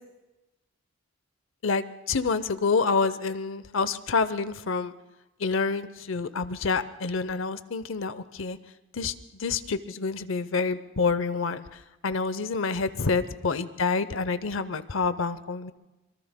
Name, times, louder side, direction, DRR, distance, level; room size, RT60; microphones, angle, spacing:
voice 1, 1.6-4.9 5.4-8.6 8.9-9.1 9.4-11.6 12.0-15.7, left 4 dB, 65° left, 13 dB, 0.7 m, -27 dB
25.5 x 23.0 x 2.2 m, 1.0 s
head